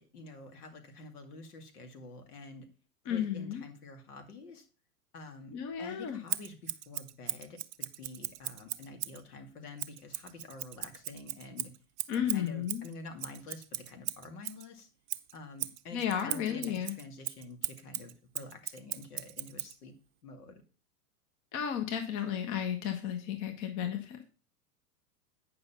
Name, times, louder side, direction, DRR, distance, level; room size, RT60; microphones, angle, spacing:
voice 1, 0.0-2.7 3.0-4.7 5.1-11.7 12.1-14.9 15.3-19.9 20.2-20.6, left 3 dB, 70° left, 5 dB, 2.4 m, -48 dB
voice 2, 3.1-3.6 5.5-6.2 12.1-12.8 15.9-16.9 21.5-24.2, left 9 dB, 40° left, 6 dB, 1.3 m, -33 dB
Scissors, 6.3-9.2 9.8-14.7 15.1-19.8, right 15 dB, 45° right, 0.7 m, -38 dB
9.3 x 5.6 x 5.7 m, 0.35 s
hypercardioid pair, 100°, 47 cm